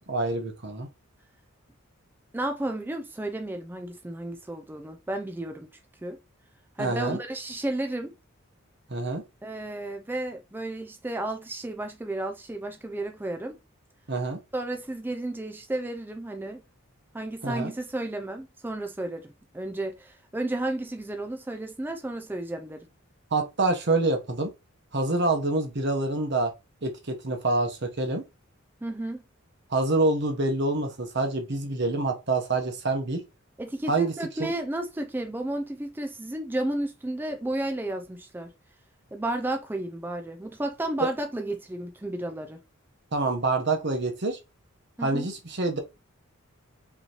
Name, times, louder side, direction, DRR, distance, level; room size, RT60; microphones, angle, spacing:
voice 1, 0.1-0.9 6.8-7.2 8.9-9.2 14.1-14.4 17.4-17.7 23.3-24.5 24.9-26.5 26.8-28.2 29.7-33.2 33.9-34.1 34.4-34.5 41.0-41.1 43.1-44.4 45.0-45.8, right 2 dB, 50° right, 1.0 m, -26 dB
voice 2, 2.3-5.7 6.0-6.2 6.8-8.1 9.4-13.5 14.5-16.6 17.1-22.9 28.8-29.2 33.6-38.5 39.1-42.6 45.0-45.3, right 1 dB, 10° right, 0.3 m, -32 dB
5.3 x 3.0 x 2.9 m
head